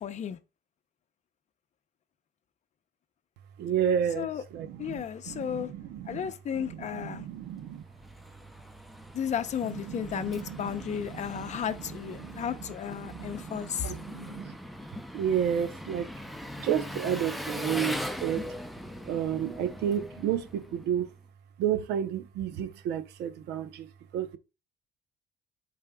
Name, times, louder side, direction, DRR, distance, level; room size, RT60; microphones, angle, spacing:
voice 1, 0.0-0.4 4.2-4.4 4.8-5.7 6.1-7.3 9.1-13.9, left 8 dB, 45° left, 0.7 m, -33 dB
voice 2, 3.6-7.8 9.6-12.5 12.9-14.6 15.1-16.1 16.6-18.5 19.1-21.1 21.6-23.9 24.1-24.4, right 9 dB, 80° right, 0.7 m, -32 dB
Engine, 7.5-21.1, left 1 dB, ahead, 0.6 m, -41 dB
11.0 x 4.2 x 2.3 m
cardioid pair, 110°, 17 cm